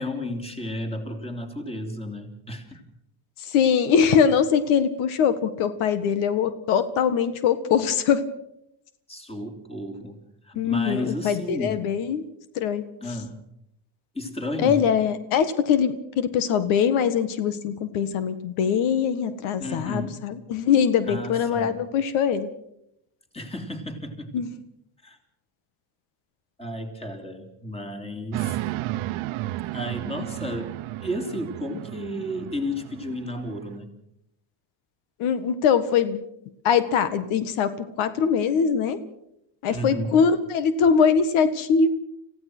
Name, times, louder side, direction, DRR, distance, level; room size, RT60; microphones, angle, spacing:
voice 1, 0.0-2.8 9.1-11.9 13.0-13.4 14.1-14.8 19.6-20.2 21.1-21.8 23.3-24.4 25.0-25.2 26.6-28.6 29.7-33.9 39.7-40.2, left 1 dB, 10° left, 5 dB, 3.2 m, -33 dB
voice 2, 3.4-8.2 10.5-12.2 12.5-12.8 14.6-22.5 24.3-24.5 35.2-36.2 36.6-39.0 39.6-41.9, left 7 dB, 90° left, 12 dB, 1.7 m, -22 dB
sound 1, 28.3-33.8, right 16 dB, 85° right, 0.9 m, -33 dB
27.0 x 16.0 x 6.1 m, 0.78 s
cardioid pair, 130°, 47 cm